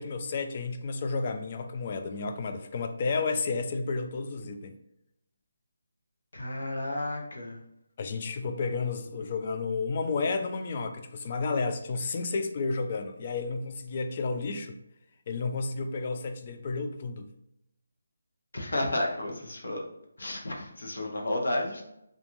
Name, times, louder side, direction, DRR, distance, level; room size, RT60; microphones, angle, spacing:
voice 1, 0.0-4.8 8.0-14.8 15.3-17.3, left 4 dB, 40° left, 7 dB, 0.3 m, -31 dB
voice 2, 6.3-7.6 18.5-19.8 20.2-21.8, left 1 dB, 75° left, 1 dB, 0.7 m, -32 dB
2.5 x 2.3 x 2.9 m, 0.82 s
figure-of-eight pair, 155°, 0 cm